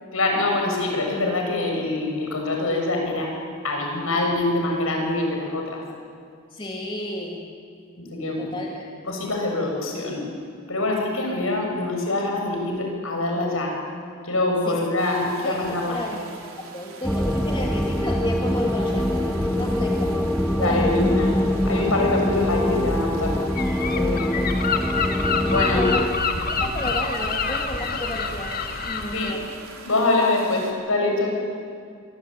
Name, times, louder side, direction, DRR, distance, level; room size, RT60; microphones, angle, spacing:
voice 1, 0.1-3.3 3.6-5.8 8.0-8.5 9.1-10.2 10.7-13.7 14.2-16.0 20.6-21.3 21.6-23.3 23.8-24.2 25.5-25.8 29.1-29.3 29.9-31.3, left 2 dB, 70° left, 1 dB, 7.3 m, -24 dB
voice 2, 6.5-7.5 8.4-9.2 14.7-14.8 15.4-16.2 16.6-20.2 20.6-21.2 24.3-24.4 25.7-26.1 26.5-29.5, equal, 20° left, -1 dB, 2.6 m, -32 dB
sound 1, 15.0-30.7, right 3 dB, 70° right, 4.3 m, -43 dB
sound 2, 17.0-26.1, left 1 dB, ahead, 1.0 m, -24 dB
Gull seagull, 23.6-29.3, left 4 dB, 40° left, 1.9 m, -27 dB
26.0 x 24.0 x 9.2 m, 2.2 s
head